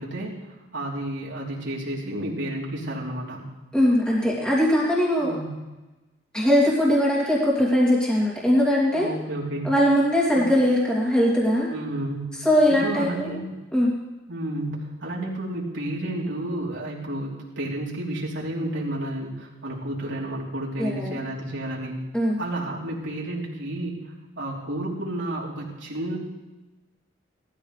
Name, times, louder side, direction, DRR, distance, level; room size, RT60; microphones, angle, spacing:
voice 1, 0.0-3.5 5.2-5.5 8.9-9.7 10.3-10.5 11.7-12.4 12.7-13.4 14.3-22.0 22.4-26.2, right 1 dB, 80° right, -4 dB, 3.4 m, -31 dB
voice 2, 3.7-5.4 6.3-9.1 9.6-11.7 12.4-13.4 13.7-13.9 20.8-21.2 22.1-22.4, equal, 5° left, -6 dB, 2.7 m, -21 dB
19.0 x 14.0 x 3.3 m, 1.1 s
head